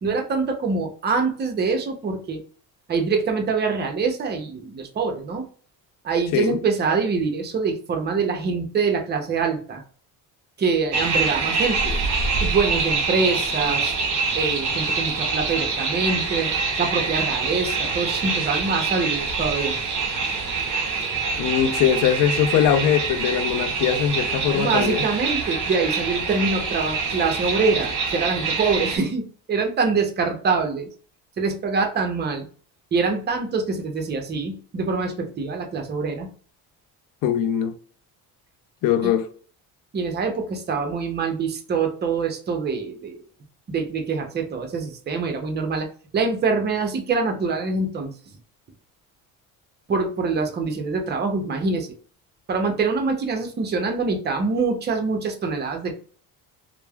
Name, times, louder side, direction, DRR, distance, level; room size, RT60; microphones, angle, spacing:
voice 1, 0.0-2.4 2.9-5.4 6.0-9.8 10.6-12.0 12.4-13.9 14.3-16.5 16.8-19.8 24.5-30.9 31.4-32.5 32.9-36.3 39.0-39.1 39.9-43.2 43.7-45.9 46.1-48.1 49.9-51.9 52.5-55.9, right 4 dB, 25° right, 0.6 m, -24 dB
sound 1, 10.9-29.0, right 4 dB, 50° right, 0.9 m, -25 dB
voice 2, 21.4-25.1 37.2-37.7 38.8-39.3, left 9 dB, 55° left, 0.5 m, -21 dB
3.1 x 2.0 x 2.2 m
cardioid pair, 105°, 39 cm